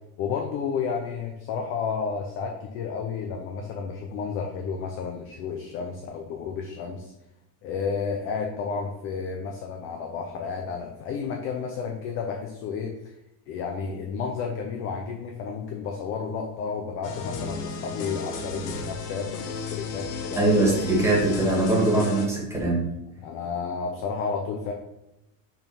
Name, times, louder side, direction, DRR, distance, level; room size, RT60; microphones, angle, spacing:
voice 1, 0.2-7.1 7.6-12.9 13.5-20.5 23.2-24.7, left 5 dB, 30° left, 2 dB, 0.5 m, -31 dB
sound 1, 17.0-22.3, left 4 dB, 80° left, 1.5 m, -34 dB
voice 2, 20.4-22.8, right 2 dB, 5° right, -4 dB, 1.6 m, -22 dB
5.6 x 4.7 x 5.4 m, 0.90 s
cardioid pair, 175°, 47 cm